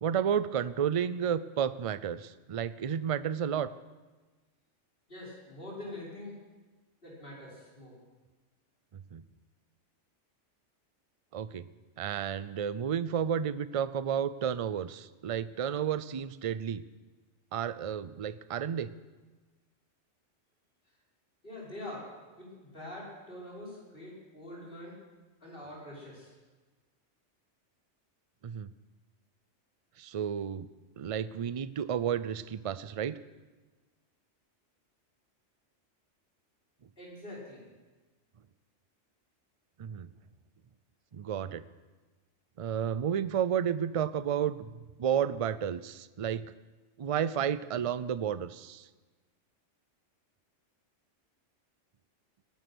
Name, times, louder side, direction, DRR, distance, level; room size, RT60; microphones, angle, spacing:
voice 1, 0.0-3.7 9.1-9.2 11.3-11.7 12.0-16.8 17.5-18.9 28.4-28.7 30.0-30.7 31.0-33.2 39.8-40.1 41.1-41.6 42.6-44.7 45.0-46.5 47.0-48.9, right 8 dB, 55° right, 16 dB, 0.4 m, -31 dB
voice 2, 5.1-6.3 7.0-7.9 21.4-22.1 22.4-24.9 25.4-26.3 37.0-37.6, left 1 dB, 50° left, -5 dB, 5.7 m, -44 dB
19.0 x 12.0 x 6.2 m, 1.3 s
omnidirectional pair, 1.2 m